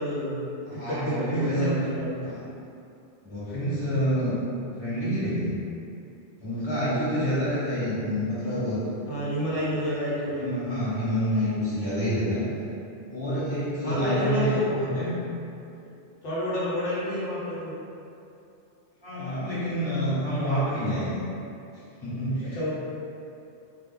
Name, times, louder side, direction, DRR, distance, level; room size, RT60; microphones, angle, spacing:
voice 1, 0.0-2.2 6.6-7.0 9.1-10.7 13.8-14.8 16.2-17.7 22.5-22.7, equal, 80° left, -9 dB, 1.0 m, -29 dB
voice 2, 0.6-1.7 2.2-2.4 3.2-4.4 4.8-5.6 6.4-8.8 10.3-12.4 13.1-15.1 19.0-21.2 22.0-22.6, equal, 25° left, -12 dB, 1.0 m, -28 dB
2.3 x 2.1 x 3.3 m, 2.6 s
omnidirectional pair, 1.2 m